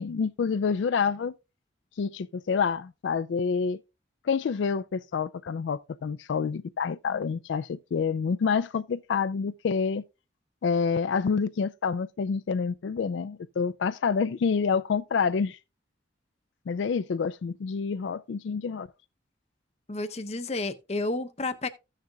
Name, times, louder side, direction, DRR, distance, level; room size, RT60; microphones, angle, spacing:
voice 1, 0.0-1.3 2.0-3.8 4.2-10.0 10.6-15.6 16.7-18.9, left 5 dB, 80° left, 0.4 m, -28 dB
voice 2, 19.9-21.7, left 2 dB, 35° left, 0.7 m, -31 dB
15.5 x 6.6 x 2.3 m
head